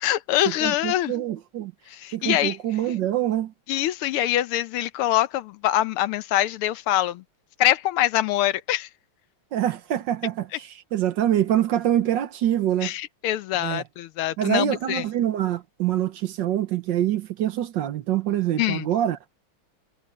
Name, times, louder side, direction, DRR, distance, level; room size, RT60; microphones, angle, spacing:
voice 1, 0.0-1.1 1.9-2.6 3.7-7.2 7.6-8.9 12.8-15.0 18.6-18.9, left 13 dB, 90° left, 1.7 m, -24 dB
voice 2, 0.6-1.7 2.1-3.5 9.5-12.9 13.6-13.8 14.4-19.2, right 11 dB, 65° right, 1.4 m, -25 dB
omnidirectional pair, 2.4 m